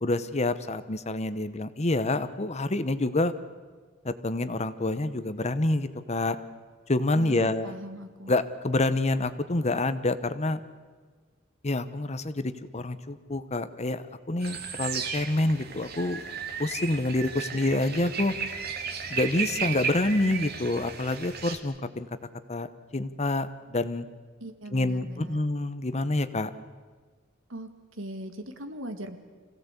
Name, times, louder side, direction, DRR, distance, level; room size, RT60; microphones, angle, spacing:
voice 1, 0.0-3.3 4.0-6.4 6.9-7.7 8.3-10.6 11.6-16.2 16.6-18.3 19.1-22.1 22.5-24.0 24.7-26.5, left 2 dB, 35° left, 12 dB, 1.0 m, -27 dB
voice 2, 7.1-8.3 24.4-25.4 27.5-29.2, right 1 dB, 85° right, 7 dB, 2.0 m, -40 dB
sound 1, 14.4-21.6, right 6 dB, 55° right, 2.1 m, -34 dB
26.0 x 17.0 x 8.3 m, 1.5 s
head